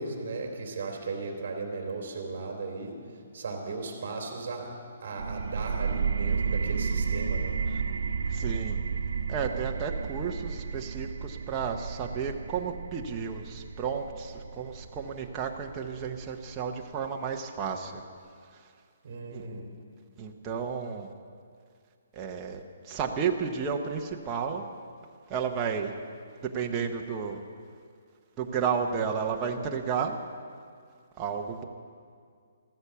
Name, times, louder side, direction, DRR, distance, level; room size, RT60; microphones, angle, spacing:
voice 1, 0.0-3.0 3.3-7.6 19.0-19.7, right 3 dB, 40° right, 2 dB, 3.0 m, -36 dB
sound 1, 5.2-16.6, right 5 dB, 80° right, 0.8 m, -32 dB
voice 2, 8.3-8.8 9.3-18.0 18.5-18.6 19.3-19.5 20.2-21.1 22.1-24.6 25.3-25.9 26.4-27.4 28.4-30.2 31.2-31.6, right 6 dB, 15° right, 1 dB, 0.8 m, -32 dB
14.5 x 13.0 x 6.9 m, 2.2 s
hypercardioid pair, 180°, 0 cm